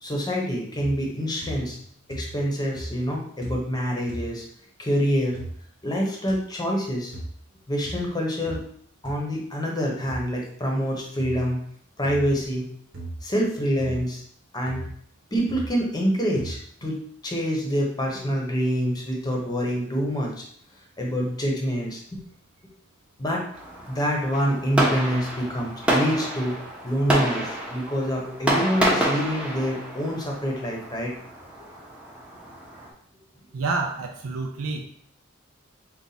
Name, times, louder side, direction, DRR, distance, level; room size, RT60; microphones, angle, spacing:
voice 1, 0.0-1.8 2.1-4.5 4.8-5.4 5.8-7.1 7.7-8.6 9.0-11.6 12.0-12.7 13.2-14.2 14.5-14.9 15.3-17.0 17.2-20.3 21.0-22.2 23.2-23.4 23.9-26.5 26.8-31.1, equal, 20° left, -1 dB, 0.9 m, -26 dB
sound 1, 0.8-1.2 1.4-1.8 2.1-2.5 2.8-3.1 3.4-3.7 4.1-4.3 5.3-5.5 6.3-6.4 7.1-7.3 7.8-8.0 8.5-8.7 9.0-9.1 10.1-10.2 11.2-11.4 12.0-12.3 12.9-13.2 13.8-14.0 14.7-14.9 15.5-15.7 16.4-16.6, right 1 dB, 60° right, 1.0 m, -36 dB
Fireworks, 23.5-32.9, right 1 dB, 5° right, 0.7 m, -28 dB
voice 2, 33.5-34.8, right 3 dB, 85° right, 2 dB, 0.5 m, -28 dB
4.1 x 2.4 x 4.0 m, 0.62 s
head